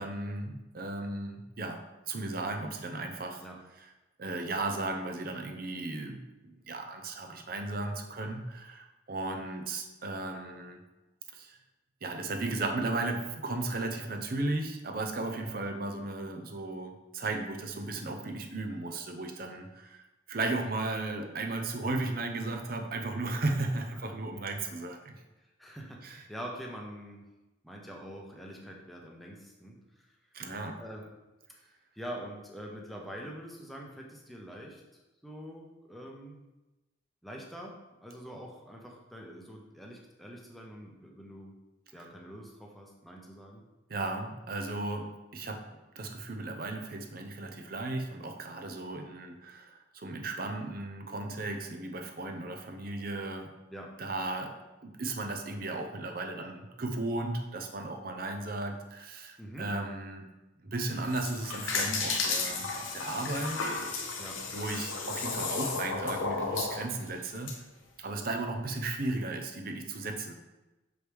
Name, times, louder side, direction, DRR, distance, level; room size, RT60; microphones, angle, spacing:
voice 1, 0.0-3.4 4.2-10.8 11.3-11.6 12.0-25.2 26.0-26.2 30.3-30.8 41.9-42.0 43.9-45.7 46.0-53.5 54.0-54.5 54.8-60.3 60.6-63.7 64.5-67.6 68.0-70.3, right 2 dB, 45° right, 4 dB, 0.7 m, -35 dB
voice 2, 25.4-27.3 27.6-30.1 30.8-31.2 31.9-34.8 35.2-36.4 37.2-37.8 38.0-41.5 41.9-43.6 45.7-45.8 53.7-53.9 59.4-59.7 64.2-64.4, equal, ahead, -2 dB, 0.8 m, -45 dB
sound 1, 60.9-67.5, left 4 dB, 80° left, 1.0 m, -33 dB
6.1 x 4.9 x 3.5 m, 1.0 s
head